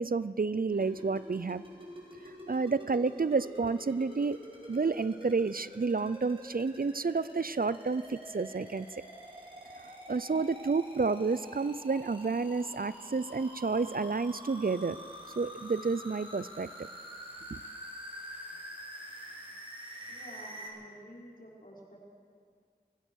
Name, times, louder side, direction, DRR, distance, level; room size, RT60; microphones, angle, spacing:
voice 1, 0.0-1.6 2.5-4.4 4.7-8.9 9.8-15.0 15.4-16.9 17.5-17.6, right 4 dB, 55° right, 16 dB, 0.5 m, -30 dB
sound 1, 0.7-20.7, equal, 30° right, 5.2 m, -47 dB
voice 2, 20.1-22.0, equal, 55° left, -4 dB, 5.4 m, -50 dB
25.0 x 16.5 x 6.4 m, 2.2 s
wide cardioid pair, 40°, 17 cm